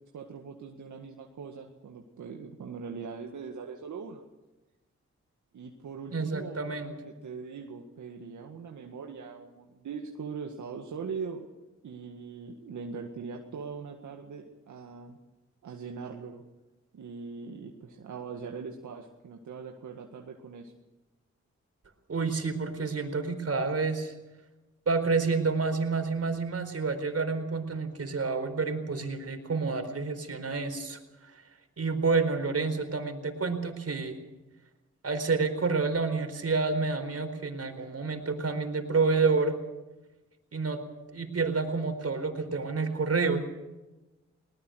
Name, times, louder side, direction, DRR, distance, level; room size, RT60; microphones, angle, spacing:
voice 1, 0.1-4.2 5.5-11.5 11.8-15.2 15.6-16.4 16.9-20.7, right 5 dB, 75° right, 2 dB, 2.0 m, -41 dB
voice 2, 6.1-6.9 22.1-24.1 24.9-31.4 31.8-34.2 35.0-39.6 40.5-40.8 41.1-43.4, right 4 dB, 55° right, 7 dB, 4.4 m, -29 dB
21.0 x 19.0 x 6.5 m, 1.1 s
supercardioid pair, 45°, 30 cm